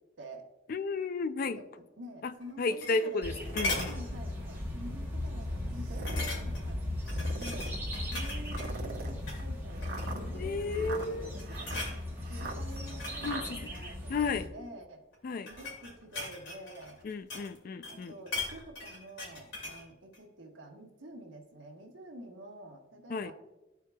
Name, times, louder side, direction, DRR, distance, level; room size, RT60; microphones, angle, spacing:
voice 1, 0.7-1.6 2.2-3.9 10.3-11.3 13.2-13.6 14.1-14.5 15.2-15.5 17.0-18.2 23.1-23.3, left 4 dB, 50° left, 12 dB, 0.4 m, -33 dB
voice 2, 2.0-6.8 7.3-7.7 8.1-11.9 12.3-15.0 15.5-17.0 17.9-23.3, right 1 dB, 75° right, 1 dB, 1.2 m, -48 dB
sound 1, 2.4-3.3 3.6-4.0 4.5-4.7 5.0-5.1 6.1-6.7 7.1-8.7 9.2-9.4 9.8-10.3 10.9-11.1 11.4-12.0 12.7-14.3 15.1-17.6 17.8-19.8 20.1-20.2, left 2 dB, 80° left, 2.5 m, -39 dB
sound 2, 3.2-14.5, left 1 dB, 10° right, 1.0 m, -37 dB
sound 3, 3.2-3.9 4.6-4.7 5.7-6.4 7.1-7.8 8.5-13.4, right 3 dB, 50° right, 1.0 m, -43 dB
13.0 x 4.6 x 2.3 m, 1.0 s
head